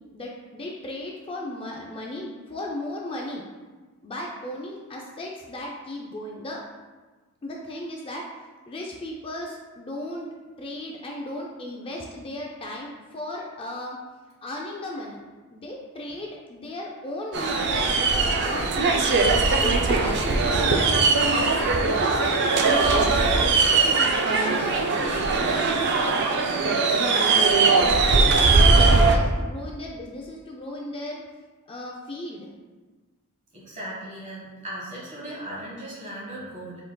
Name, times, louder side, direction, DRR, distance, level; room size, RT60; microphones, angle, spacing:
voice 1, 0.1-3.4 4.0-6.6 7.4-8.2 8.7-10.3 10.6-14.0 14.4-15.2 15.5-19.1 19.6-23.6 24.2-26.8 27.3-27.5 28.2-31.2 31.7-32.5, left 1 dB, 25° left, -2 dB, 0.4 m, -36 dB
sound 1, 17.3-29.2, right 3 dB, 50° right, 0.4 m, -20 dB
voice 2, 33.5-36.8, right 1 dB, 35° right, -5 dB, 1.4 m, -37 dB
5.5 x 3.8 x 2.2 m, 1.3 s
head